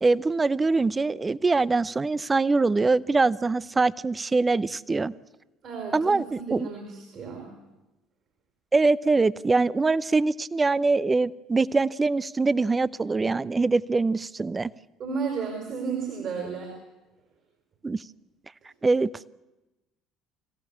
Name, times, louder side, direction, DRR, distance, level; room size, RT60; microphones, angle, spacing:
voice 1, 0.0-5.1 5.9-6.7 8.7-14.7 17.8-18.0 18.8-19.1, right 3 dB, 25° right, 20 dB, 0.7 m, -23 dB
voice 2, 5.6-7.5 15.0-16.7, right 5 dB, 50° right, 2 dB, 5.5 m, -33 dB
24.5 x 16.5 x 8.6 m, 1.0 s
hypercardioid pair, 60°, 0 cm